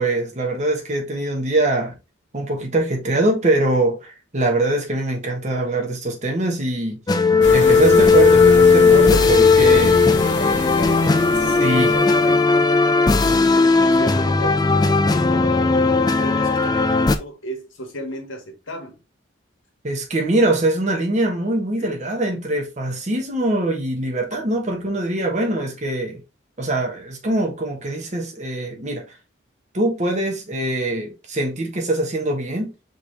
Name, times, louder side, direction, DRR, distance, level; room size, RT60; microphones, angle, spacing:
voice 1, 0.0-1.9 2.3-7.0 7.5-10.0 11.6-11.9 19.8-26.2 26.6-29.0 29.7-32.7, right 2 dB, 35° right, 1.2 m, -22 dB
sound 1, 7.1-17.2, left 4 dB, 20° left, 0.4 m, -16 dB
sound 2, 7.4-12.4, left 2 dB, 65° left, 1.1 m, -29 dB
voice 2, 9.2-13.4 13.8-15.9 16.2-19.0 21.8-22.0 25.4-25.7, equal, 85° left, 1.4 m, -35 dB
5.0 x 3.1 x 3.2 m
head